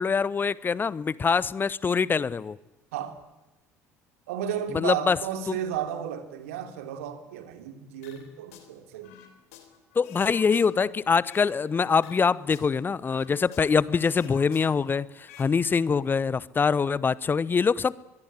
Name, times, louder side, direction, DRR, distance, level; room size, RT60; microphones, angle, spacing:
voice 1, 0.0-2.6 4.7-5.2 5.5-5.6 9.9-17.9, left 5 dB, 25° left, 0.9 m, -24 dB
voice 2, 4.3-9.1, right 9 dB, 65° right, 3.0 m, -33 dB
sound 1, 8.0-8.7 9.0-11.6 11.9-13.8 14.0-15.5 15.8-16.0, left 10 dB, 65° left, 3.6 m, -50 dB
23.0 x 22.0 x 9.9 m
figure-of-eight pair, 60°, 8 cm